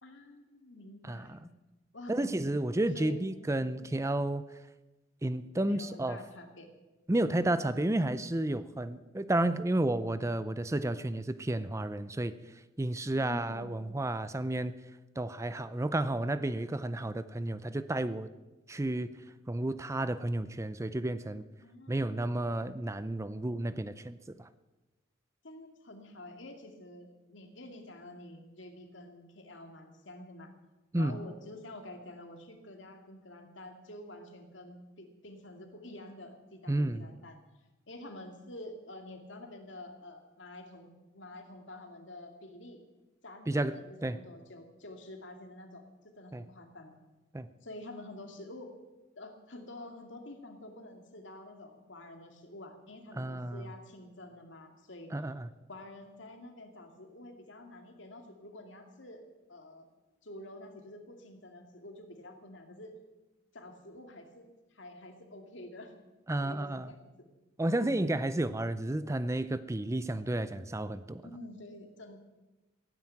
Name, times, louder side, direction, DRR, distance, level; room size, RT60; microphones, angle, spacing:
voice 1, 0.0-1.4 1.9-2.5 2.9-3.4 3.8-3.9 5.6-6.7 13.2-13.8 21.6-22.7 25.4-30.5 30.9-37.4 37.9-42.8 43.2-47.0 47.6-48.8 49.2-55.1 55.7-59.2 59.5-59.9 60.2-63.0 63.5-65.9 66.4-67.1 71.2-72.2, left 1 dB, 70° left, 4 dB, 2.4 m, -48 dB
voice 2, 1.1-1.4 2.1-4.4 5.2-6.2 7.1-12.3 12.8-14.7 15.2-18.3 18.7-19.1 19.5-21.4 21.9-24.5 30.9-31.2 36.7-37.1 43.5-44.2 46.3-46.4 47.3-47.5 53.2-53.7 55.1-55.5 66.3-66.9 67.6-71.2, right 1 dB, 15° right, 13 dB, 0.5 m, -32 dB
16.0 x 9.5 x 8.9 m, 1.1 s
head